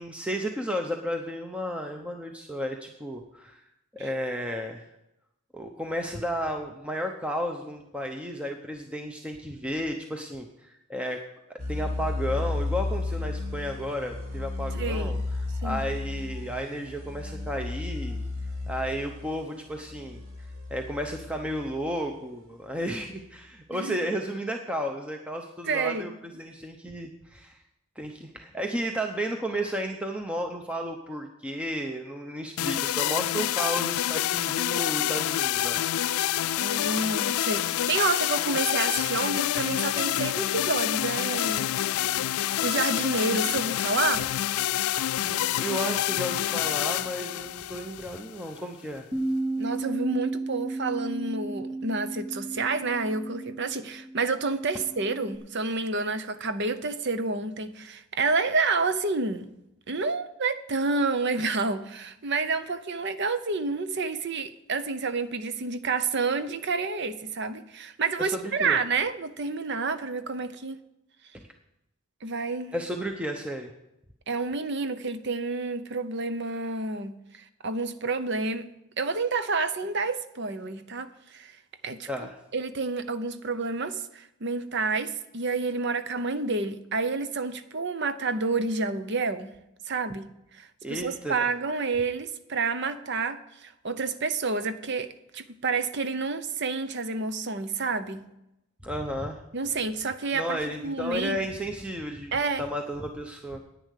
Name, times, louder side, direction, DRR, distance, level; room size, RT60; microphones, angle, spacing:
voice 1, 0.0-3.6 3.9-4.8 5.5-11.2 11.5-15.2 15.6-18.2 18.7-20.2 20.7-27.6 28.0-35.8 45.2-49.1 68.2-68.8 72.7-73.7 82.1-82.3 90.8-91.5 98.8-99.4 100.3-103.6, equal, 5° right, 0.7 m, -33 dB
sound 1, 11.6-22.1, left 2 dB, 80° right, 2.5 m, -33 dB
voice 2, 14.7-15.2 15.6-15.8 23.7-24.0 25.7-26.1 36.6-41.7 42.6-44.3 49.6-59.5 59.9-70.8 72.2-72.8 74.3-78.6 79.0-81.6 81.8-89.5 89.9-98.3 99.5-101.4 102.3-102.6, right 3 dB, 55° right, 0.8 m, -29 dB
sound 2, 32.6-48.6, left 12 dB, 85° left, 0.3 m, -27 dB
Bass guitar, 49.1-55.4, right 2 dB, 35° right, 2.3 m, -33 dB
10.5 x 9.3 x 6.5 m
head